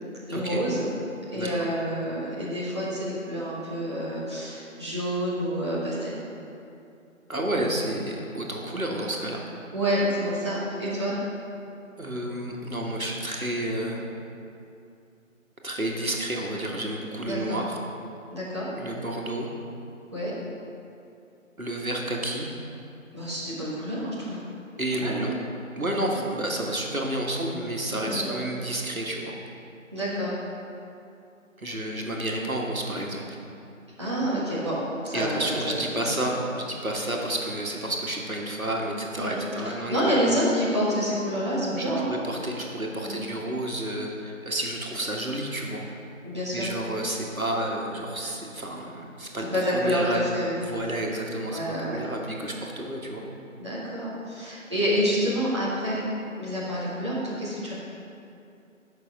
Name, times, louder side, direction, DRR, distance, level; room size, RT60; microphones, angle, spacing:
voice 1, 0.3-0.9 1.3-6.2 9.7-11.2 17.3-17.6 18.3-18.7 20.1-20.3 23.1-24.4 24.9-25.2 27.9-28.4 29.9-30.3 34.0-35.8 36.0-36.1 39.2-42.1 42.9-43.2 46.2-46.7 49.5-50.6 51.5-52.0 53.6-56.1 56.3-57.7, equal, 20° right, -10 dB, 1.3 m, -28 dB
voice 2, 1.4-1.7 7.3-9.4 12.0-14.1 15.6-17.8 18.7-19.5 21.6-22.5 24.8-25.3 25.8-29.3 31.6-33.4 35.1-40.0 41.8-45.8 46.5-50.3 50.6-53.2, right 1 dB, 85° right, -1 dB, 1.7 m, -30 dB
8.5 x 6.2 x 5.3 m, 2.6 s
figure-of-eight pair, 165°, 41 cm